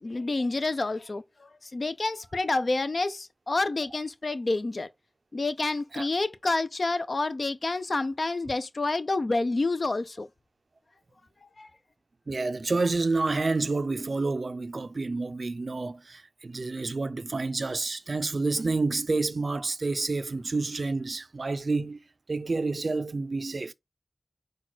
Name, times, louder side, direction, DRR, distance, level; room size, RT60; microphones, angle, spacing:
voice 1, 0.0-4.9 5.3-10.3 11.4-11.7, left 3 dB, 65° left, 0.4 m, -29 dB
voice 2, 12.3-22.0 22.3-23.7, right 3 dB, 65° right, 0.4 m, -29 dB
6.0 x 2.2 x 4.0 m
wide cardioid pair, 65°, 0 cm